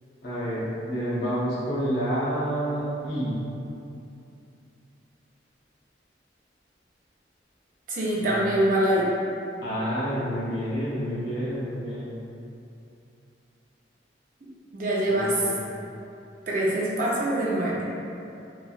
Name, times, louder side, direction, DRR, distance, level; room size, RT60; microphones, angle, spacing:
voice 1, 0.2-3.4 8.2-8.4 9.6-12.1 15.1-15.7, equal, 60° left, -9 dB, 0.6 m, -29 dB
voice 2, 7.9-9.1 14.7-15.5 16.5-17.8, right 1 dB, 45° right, -6 dB, 0.5 m, -24 dB
2.9 x 2.3 x 2.4 m, 2.7 s
head